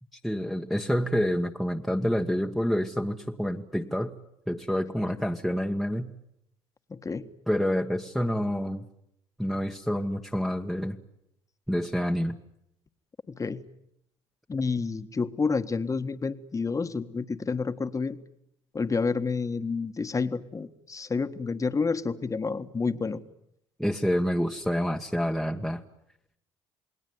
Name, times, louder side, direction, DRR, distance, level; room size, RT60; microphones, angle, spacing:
voice 1, 0.2-4.1 4.5-6.1 7.5-8.8 9.4-11.0 11.7-12.4 23.8-25.8, equal, ahead, 1 dB, 1.5 m, -28 dB
voice 2, 6.9-7.3 13.3-13.6 14.5-18.2 18.7-23.2, left 4 dB, 25° left, 10 dB, 1.6 m, -29 dB
28.5 x 20.0 x 9.6 m, 0.78 s
supercardioid pair, 85°, 12 cm